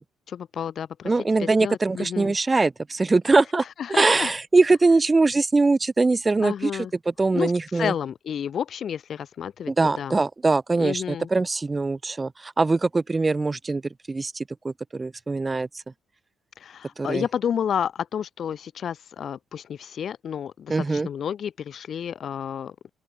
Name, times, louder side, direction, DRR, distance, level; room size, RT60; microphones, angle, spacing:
voice 1, 0.3-2.3 3.6-4.3 6.4-6.9 7.3-10.2 10.7-11.3 16.6-22.9, left 8 dB, 60° left, 1.4 m, -31 dB
voice 2, 1.0-3.6 3.9-6.7 7.2-7.9 9.7-13.8 14.1-15.7 17.0-17.2 20.7-21.1, right 3 dB, 25° right, 0.7 m, -22 dB
open air
cardioid pair, 90°, 0 cm